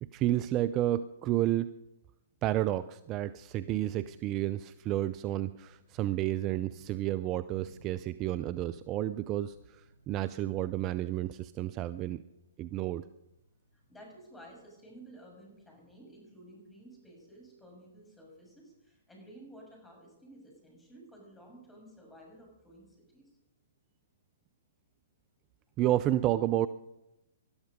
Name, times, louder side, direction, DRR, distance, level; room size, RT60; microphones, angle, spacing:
voice 1, 0.0-1.7 2.4-12.2 12.6-13.1 25.8-26.7, right 14 dB, 30° right, 15 dB, 0.5 m, -31 dB
sound 1, 3.1-19.0, right 1 dB, 90° right, 3.7 m, -61 dB
voice 2, 13.7-23.3, right 1 dB, 10° left, 0 dB, 6.7 m, -53 dB
19.5 x 12.5 x 5.2 m, 0.91 s
figure-of-eight pair, 120°, 0 cm